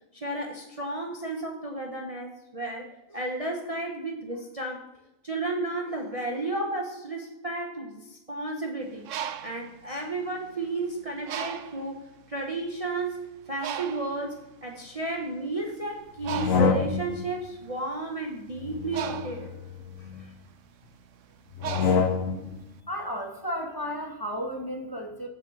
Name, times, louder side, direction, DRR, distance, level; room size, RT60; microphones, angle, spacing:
voice 1, 0.1-4.8 5.2-9.0 9.4-19.5 20.1-20.3, right 2 dB, 30° right, 0 dB, 1.0 m, -33 dB
Bird, 8.9-10.7 11.3-11.9 12.6-12.8 13.0-22.7, right 10 dB, 70° right, 0.9 m, -38 dB
sound 1, 16.2-17.3 18.6-20.2 21.6-22.6, left 5 dB, 70° left, 1.2 m, -27 dB
voice 2, 22.9-25.3, equal, 15° left, 1 dB, 1.2 m, -33 dB
6.7 x 6.4 x 7.2 m, 0.95 s
omnidirectional pair, 1.5 m